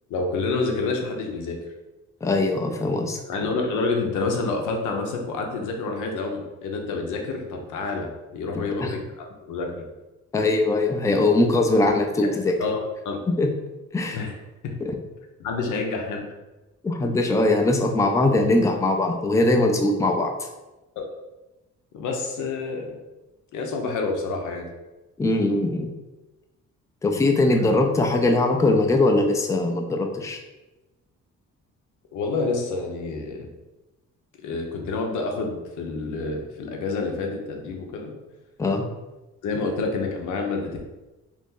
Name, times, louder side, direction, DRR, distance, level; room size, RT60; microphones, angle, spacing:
voice 1, 0.1-1.6 3.3-9.8 12.6-13.2 14.1-14.3 14.6-14.7 15.4-16.3 21.0-21.1 21.9-23.0 23.5-24.7 27.5-27.7 32.1-33.5 34.4-38.1 39.4-40.7, left 3 dB, 80° left, 2 dB, 0.7 m, -28 dB
voice 2, 2.2-3.2 8.8-8.9 10.3-12.5 13.3-13.5 13.9-14.2 14.8-14.9 16.8-20.5 25.2-25.9 27.0-30.4 38.6-38.8, left 2 dB, 10° left, 3 dB, 0.4 m, -21 dB
2.8 x 2.6 x 3.6 m, 1.1 s
cardioid pair, 90°, 30 cm